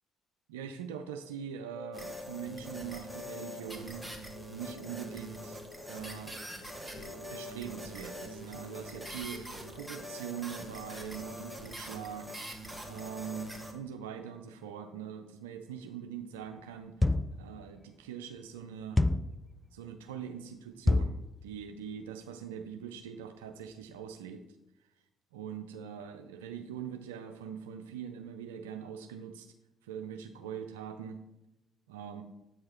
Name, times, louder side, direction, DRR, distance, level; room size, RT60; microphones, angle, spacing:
voice 1, 0.5-4.1 4.5-5.6 5.9-6.4 7.3-12.4 12.9-17.0 17.3-19.0 19.7-24.4 25.3-29.5 29.8-31.2 31.9-32.2, right 8 dB, 90° right, 6 dB, 0.4 m, -42 dB
sound 1, 1.8-12.1 12.6-12.7, left 3 dB, 60° left, 1.0 m, -52 dB
sound 2, 1.9-13.7, equal, 5° right, 1.5 m, -44 dB
sound 3, 17.0-17.4 19.0-19.4 20.9-21.2, left 2 dB, 15° left, 0.4 m, -26 dB
8.4 x 4.7 x 4.3 m, 0.93 s
hypercardioid pair, 55°, 0 cm